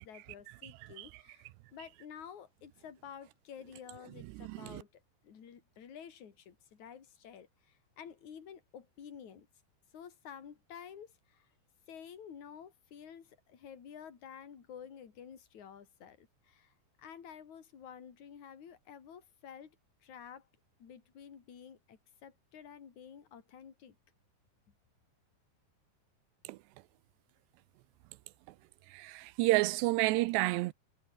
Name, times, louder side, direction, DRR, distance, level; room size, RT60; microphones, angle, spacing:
voice 1, 0.0-9.5 9.9-11.5 11.9-19.8 20.0-20.5 20.8-24.0, left 8 dB, 45° left, 4.2 m, -51 dB
voice 2, 4.4-4.8 26.5-26.6 28.9-30.7, right 20 dB, 85° right, 2.8 m, -30 dB
omnidirectional pair, 4.9 m